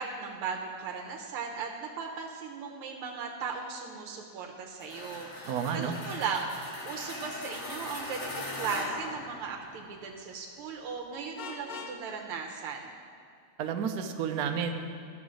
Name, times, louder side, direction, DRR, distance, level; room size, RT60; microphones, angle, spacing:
voice 1, 0.0-6.5 6.9-12.9, right 6 dB, 90° right, 1 dB, 1.7 m, -37 dB
sound 1, 4.8-10.0, left 2 dB, 45° left, 1.0 m, -40 dB
voice 2, 5.4-5.9 13.6-14.7, right 7 dB, 70° right, 4 dB, 0.9 m, -31 dB
Vehicle horn car horn honking, 11.4-12.0, left 5 dB, 75° left, 1.8 m, -41 dB
12.5 x 6.0 x 6.3 m, 2.5 s
omnidirectional pair, 2.3 m